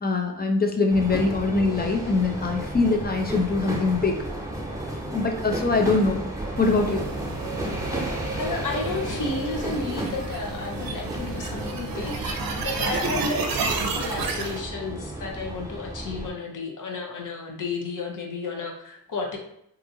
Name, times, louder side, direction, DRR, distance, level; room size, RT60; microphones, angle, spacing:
voice 1, 0.0-4.2 5.1-6.2 6.6-7.1, left 3 dB, 25° left, 3 dB, 0.6 m, -23 dB
sound 1, 0.9-16.3, right 1 dB, 10° right, 0.9 m, -33 dB
sound 2, 6.6-14.6, right 4 dB, 80° right, 0.5 m, -31 dB
voice 2, 8.4-19.4, left 3 dB, 65° left, 1 dB, 0.8 m, -32 dB
2.8 x 2.5 x 2.7 m, 0.77 s
cardioid pair, 50°, 34 cm